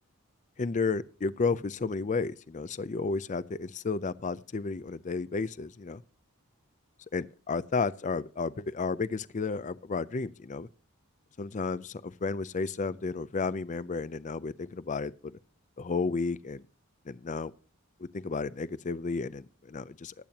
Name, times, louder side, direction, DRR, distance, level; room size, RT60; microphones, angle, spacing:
voice 1, 0.6-6.0 7.1-10.7 11.4-15.3 15.8-16.6 17.1-17.5 18.0-20.1, left 4 dB, 35° left, 0.5 m, -32 dB
20.5 x 8.8 x 2.9 m
head